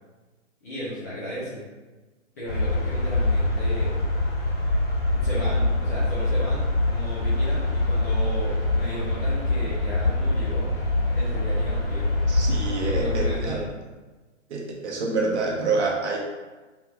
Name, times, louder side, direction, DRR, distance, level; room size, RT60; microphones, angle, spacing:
voice 1, 0.6-1.6 2.4-3.9 5.1-10.7 11.1-12.1 12.9-13.7, equal, 15° left, -11 dB, 0.4 m, -35 dB
sound 1, 2.5-13.4, left 2 dB, 35° left, 1.2 m, -24 dB
voice 2, 12.3-13.6 14.5-16.2, right 3 dB, 60° right, -1 dB, 0.9 m, -27 dB
3.4 x 2.9 x 2.3 m, 1.3 s
hypercardioid pair, 145°, 37 cm